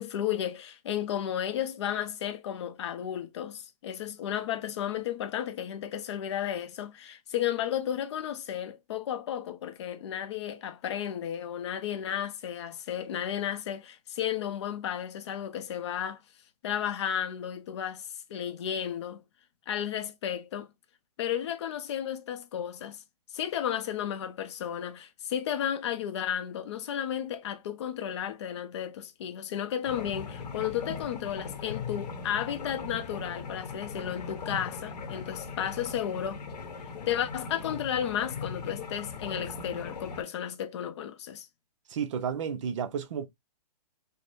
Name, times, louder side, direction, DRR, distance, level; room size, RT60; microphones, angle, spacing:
voice 1, 0.0-16.2 16.6-19.2 19.7-20.7 21.2-23.0 23.3-36.4 37.1-41.5, left 10 dB, 45° left, 0.5 m, -33 dB
sound 1, 29.8-40.2, left 4 dB, 85° left, 0.9 m, -39 dB
voice 2, 41.9-43.3, right 7 dB, 50° right, 0.6 m, -32 dB
3.3 x 2.0 x 2.5 m
hypercardioid pair, 155°, 21 cm